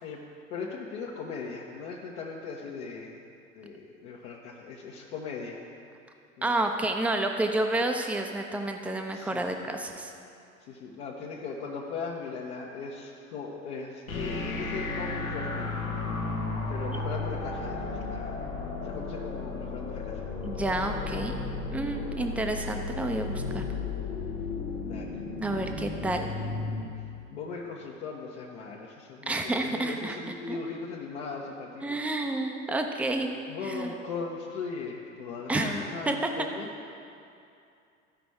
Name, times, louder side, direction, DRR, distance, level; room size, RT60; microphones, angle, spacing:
voice 1, 0.5-3.2 3.5-5.6 6.4-6.5 9.1-9.5 10.7-16.3 16.7-18.5 18.8-20.2 24.8-25.2 27.0-27.1 27.3-32.0 33.5-36.7, left 5 dB, 60° left, -3 dB, 1.1 m, -38 dB
voice 2, 6.4-10.1 20.4-21.3 21.7-23.6 25.4-26.3 29.3-30.2 30.5-30.6 31.8-33.3 33.6-33.9 35.5-35.8 36.1-36.3, right 2 dB, 5° right, 4 dB, 0.6 m, -30 dB
sound 1, 14.1-26.8, left 3 dB, 85° left, 1.1 m, -34 dB
14.0 x 5.1 x 4.7 m, 2.5 s
figure-of-eight pair, 75°, 41 cm